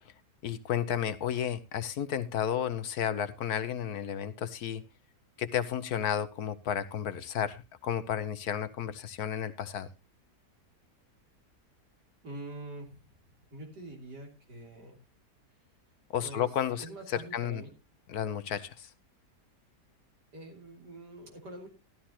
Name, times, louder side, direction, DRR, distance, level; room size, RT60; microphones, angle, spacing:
voice 1, 0.4-4.8 5.4-9.9 16.1-17.6 18.1-18.9, left 9 dB, 65° left, 12 dB, 1.3 m, -32 dB
voice 2, 12.2-13.1 13.5-15.0 16.2-16.5 16.8-17.7 20.3-21.7, right 1 dB, 75° right, 1 dB, 3.8 m, -45 dB
13.0 x 12.5 x 2.9 m, 0.26 s
omnidirectional pair, 1.8 m